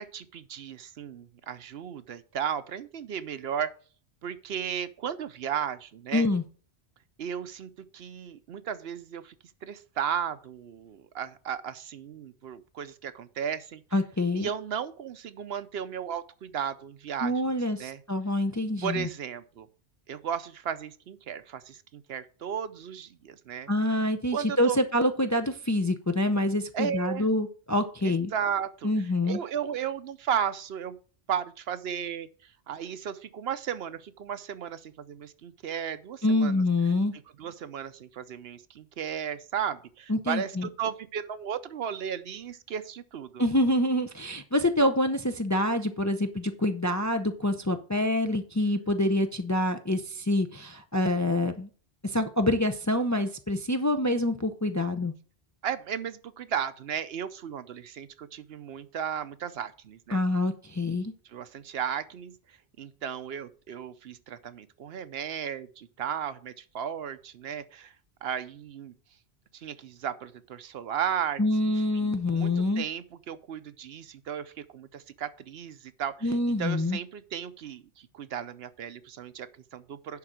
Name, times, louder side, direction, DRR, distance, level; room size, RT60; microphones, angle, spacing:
voice 1, 0.0-3.7 4.2-6.3 7.2-9.3 9.6-13.8 14.3-17.3 17.8-18.0 18.8-19.7 20.1-23.7 24.3-24.8 26.7-27.3 28.0-31.0 31.3-36.6 37.1-43.4 55.6-60.2 61.3-62.3 62.8-67.9 68.2-68.9 69.5-80.2, right 8 dB, 70° right, 13 dB, 0.9 m, -35 dB
voice 2, 6.1-6.4 13.9-14.5 17.2-19.1 23.7-28.3 28.8-29.4 36.2-37.1 40.1-40.7 43.4-51.7 52.0-55.1 60.1-61.1 71.4-72.8 76.2-77.0, left 1 dB, 25° left, 7 dB, 0.4 m, -26 dB
10.5 x 3.8 x 6.1 m, 0.41 s
omnidirectional pair, 1.1 m